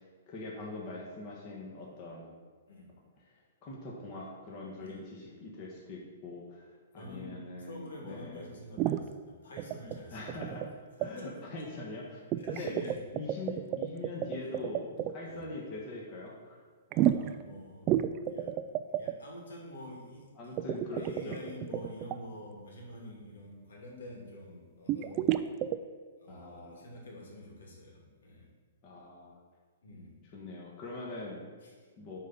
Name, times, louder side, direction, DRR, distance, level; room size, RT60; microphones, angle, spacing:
voice 1, 0.0-2.3 3.3-8.4 10.1-10.7 11.0-12.2 12.5-12.8 13.1-16.6 20.4-21.4 26.3-26.8 28.8-29.4 30.3-31.5 32.0-32.2, left 2 dB, 30° left, -3 dB, 1.5 m, -43 dB
voice 2, 6.9-10.7 11.0-11.4 12.4-13.0 15.2-15.5 16.9-18.6 18.9-20.6 21.0-25.4 26.2-28.5 29.8-30.2 31.6-31.9, left 1 dB, 85° left, -1 dB, 2.5 m, -47 dB
sound 1, 8.8-9.0 9.6-10.0 10.3-10.7 11.0-11.1 12.3-15.1 16.9-17.4 17.9-19.1 20.6-22.2 24.9-25.8, right 12 dB, 30° right, 0.3 m, -30 dB
9.2 x 4.0 x 5.9 m, 1.5 s
hypercardioid pair, 155°, 0 cm